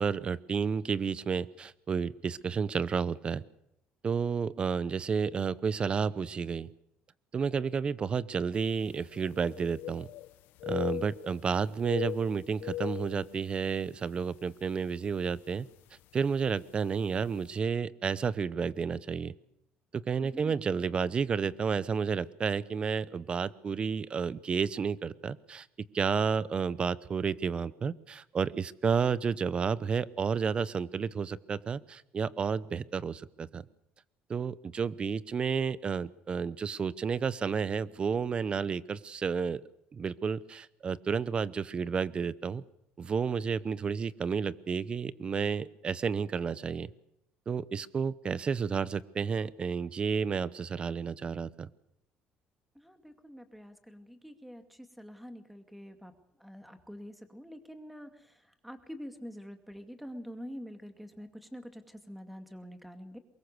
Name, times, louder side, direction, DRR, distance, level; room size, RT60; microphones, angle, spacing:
voice 1, 0.0-3.4 4.0-6.7 7.3-10.1 10.7-15.7 16.1-19.3 19.9-25.7 25.9-33.6 34.3-39.6 39.9-42.6 43.0-46.9 47.5-51.7, right 6 dB, 30° right, 18 dB, 0.8 m, -31 dB
sound 1, 8.6-8.7 9.0-10.3 10.6-11.5 11.7-13.9 14.3-14.5 15.1-15.4 16.5-16.6 16.9-17.0, left 13 dB, 80° left, 1.0 m, -38 dB
voice 2, 20.2-20.6 52.8-56.1 56.4-58.3 58.6-63.2, equal, ahead, 7 dB, 2.3 m, -46 dB
23.5 x 21.5 x 6.8 m, 0.79 s
cardioid pair, 135°, 3 cm